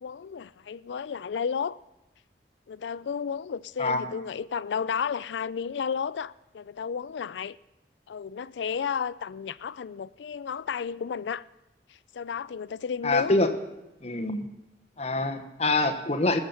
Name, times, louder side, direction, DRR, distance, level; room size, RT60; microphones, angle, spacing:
voice 1, 0.0-1.8 2.7-7.6 8.1-11.4 12.1-13.4, left 6 dB, 85° left, 0.4 m, -32 dB
voice 2, 13.0-13.5 14.0-14.5 15.0-16.4, left 2 dB, 40° left, 1.1 m, -25 dB
19.5 x 7.3 x 5.6 m
head